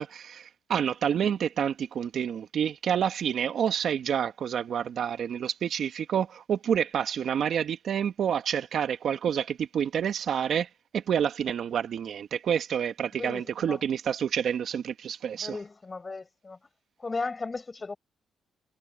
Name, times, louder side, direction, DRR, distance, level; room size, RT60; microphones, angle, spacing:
voice 1, 0.0-15.6, right 8 dB, 60° right, 1.7 m, -28 dB
voice 2, 13.1-13.8 15.3-16.6 17.0-18.0, left 3 dB, 25° left, 5.6 m, -36 dB
cardioid pair, 90°, 0 cm